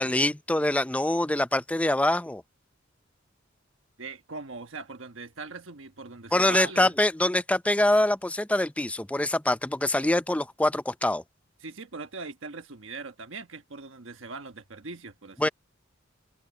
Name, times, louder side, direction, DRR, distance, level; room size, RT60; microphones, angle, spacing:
voice 1, 0.0-2.4 6.3-11.2 15.4-15.5, left 1 dB, 5° left, 0.5 m, -24 dB
voice 2, 4.0-6.9 11.6-15.5, right 4 dB, 70° right, 1.3 m, -40 dB
head